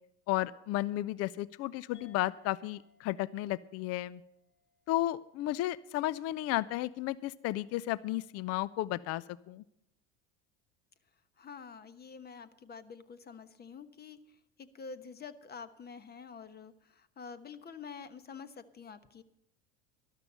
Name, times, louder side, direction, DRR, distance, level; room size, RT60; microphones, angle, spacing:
voice 1, 0.3-4.2 4.9-9.6, left 15 dB, 45° left, 20 dB, 0.5 m, -33 dB
sound 1, 1.9-6.9, left 6 dB, 75° left, 2.4 m, -67 dB
voice 2, 11.4-19.2, left 5 dB, 30° left, 13 dB, 1.1 m, -48 dB
13.0 x 12.0 x 5.5 m, 0.78 s
hypercardioid pair, 80°, 34 cm